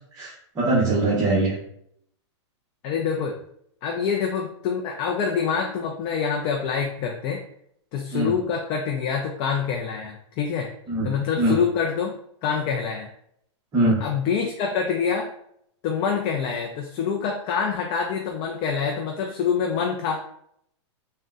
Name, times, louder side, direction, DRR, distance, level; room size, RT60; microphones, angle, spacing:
voice 1, 0.2-1.5 8.1-8.3 10.9-11.1 11.4-11.5 13.7-14.0, right 2 dB, 20° right, -8 dB, 0.9 m, -22 dB
voice 2, 2.8-3.3 3.8-7.4 7.9-10.7 11.0-12.1 12.4-13.1 14.0-15.3 15.8-20.3, left 6 dB, 35° left, 1 dB, 0.4 m, -26 dB
3.7 x 2.1 x 2.3 m, 0.70 s
hypercardioid pair, 135°, 15 cm